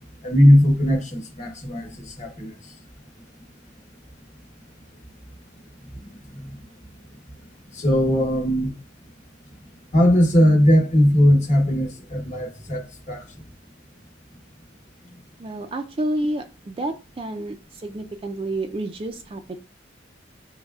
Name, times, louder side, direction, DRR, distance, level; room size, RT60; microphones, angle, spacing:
voice 1, 0.2-2.5 5.8-6.6 7.7-8.7 9.9-13.4, equal, 40° left, 1.1 m, -19 dB
voice 2, 15.4-19.6, right 1 dB, 30° right, 0.4 m, -29 dB
6.4 x 3.1 x 2.3 m
head